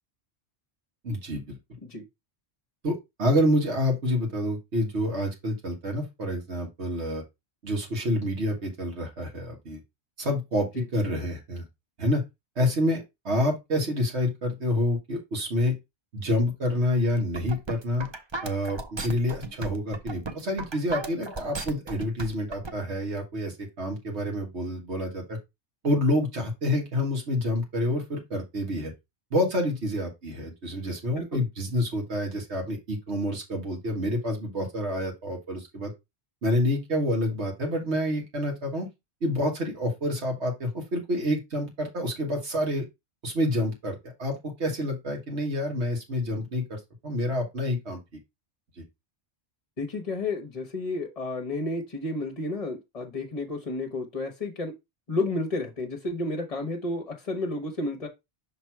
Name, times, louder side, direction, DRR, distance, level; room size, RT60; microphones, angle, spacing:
voice 1, 1.0-1.5 2.8-7.2 7.6-9.8 10.2-10.7 10.9-11.6 12.0-12.2 12.5-15.7 16.1-18.1 18.4-25.4 25.8-28.9 29.3-35.9 36.4-38.9 39.2-42.8 43.2-48.0 48.8-48.9, left 1 dB, 80° right, 1.8 m, -28 dB
sound 1, 17.2-22.7, right 3 dB, 30° right, 0.7 m, -35 dB
voice 2, 49.8-54.7 55.1-58.1, left 2 dB, 35° left, 1.0 m, -31 dB
6.0 x 3.4 x 4.6 m
omnidirectional pair, 1.1 m